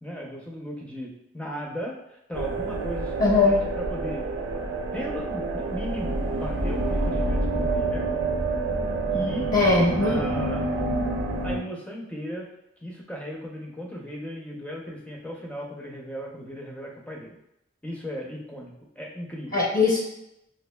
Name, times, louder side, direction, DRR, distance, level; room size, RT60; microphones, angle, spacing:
voice 1, 0.0-4.3 4.9-8.1 9.1-9.5 10.0-10.7 11.4-12.5 12.8-17.4 17.8-19.6, equal, 5° left, -2 dB, 0.5 m, -36 dB
sound 1, 2.3-11.6, right 2 dB, 75° right, 0.5 m, -28 dB
voice 2, 3.2-3.6 9.5-10.2 19.5-20.0, left 3 dB, 45° left, -4 dB, 0.8 m, -20 dB
5.1 x 2.4 x 2.2 m, 0.83 s
head